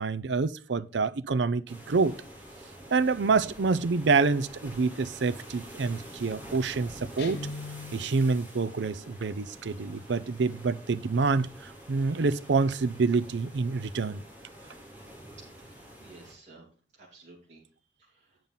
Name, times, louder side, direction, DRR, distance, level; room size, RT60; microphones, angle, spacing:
voice 1, 0.0-2.1 2.9-7.5 7.9-14.2, right 4 dB, 85° right, 0.5 m, -27 dB
sound 1, 1.7-16.3, equal, 10° right, 3.1 m, -47 dB
Guitar, 7.2-8.3, left 3 dB, 70° left, 1.2 m, -39 dB
voice 2, 15.4-18.4, right 3 dB, 40° right, 2.6 m, -55 dB
9.0 x 5.5 x 5.6 m
head